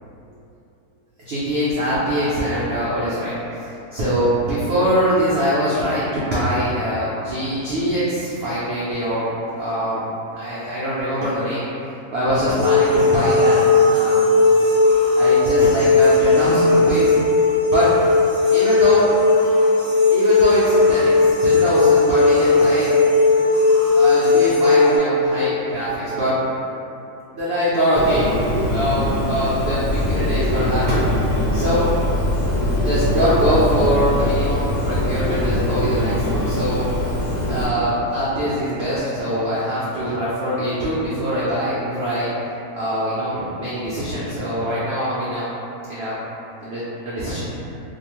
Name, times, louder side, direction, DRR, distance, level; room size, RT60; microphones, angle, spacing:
voice 1, 1.3-3.3 3.6-9.3 9.6-11.7 12.1-14.4 15.1-17.2 17.7-17.9 18.5-19.1 20.1-23.0 23.9-26.4 27.3-28.3 28.7-31.1 31.5-31.8 32.8-36.9 37.4-42.3 42.7-45.5 45.9-46.1 46.6-47.4, equal, 85° right, -9 dB, 0.5 m, -23 dB
sound 1, 12.5-25.0, left 3 dB, 25° right, 0.7 m, -16 dB
Bird, 27.9-37.6, left 1 dB, 20° left, 0.8 m, -23 dB
sound 2, 29.8-35.6, left 1 dB, 85° left, 1.3 m, -26 dB
2.7 x 2.3 x 3.0 m, 2.9 s
omnidirectional pair, 1.6 m